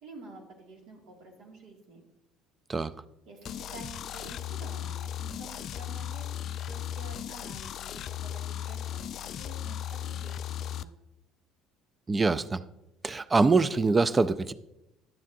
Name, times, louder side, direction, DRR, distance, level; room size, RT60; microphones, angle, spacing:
voice 1, 0.0-2.0 3.3-6.3 6.6-10.9, right 3 dB, 65° right, 2.1 m, -49 dB
sound 1, 3.4-10.8, left 10 dB, 55° left, 0.3 m, -36 dB
voice 2, 12.1-12.6 13.0-14.5, right 3 dB, 25° right, 0.4 m, -24 dB
10.5 x 7.3 x 2.6 m
hypercardioid pair, 70°, 0 cm